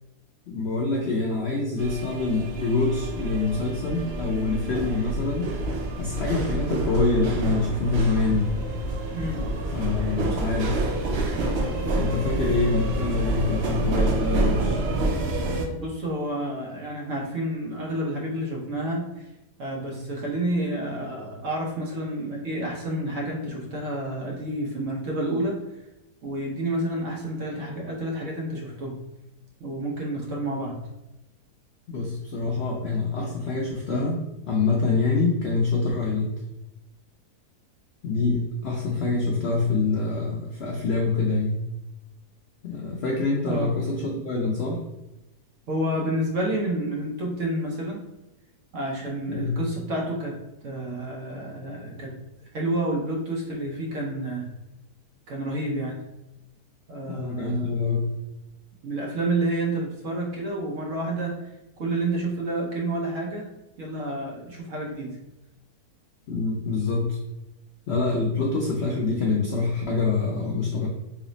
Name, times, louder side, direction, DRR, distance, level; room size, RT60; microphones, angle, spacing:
voice 1, 0.5-5.5 6.0-8.6 9.7-10.9 11.3-14.8 31.9-34.2 34.5-36.3 38.0-41.6 42.6-44.8 49.3-49.6 57.1-58.1 66.3-67.2 67.9-70.9, left 3 dB, 75° left, -2 dB, 0.6 m, -25 dB
sound 1, 1.8-15.7, right 2 dB, 90° right, 0.5 m, -28 dB
voice 2, 9.1-9.5 15.7-19.2 19.6-25.6 26.2-29.0 29.6-30.8 43.5-43.7 45.7-48.0 48.7-50.4 50.6-52.2 52.5-54.5 55.3-56.0 56.9-57.9 58.8-61.5 61.8-63.5 63.8-65.2, right 1 dB, 60° right, -2 dB, 0.9 m, -29 dB
3.2 x 2.0 x 3.8 m, 0.95 s
omnidirectional pair, 1.7 m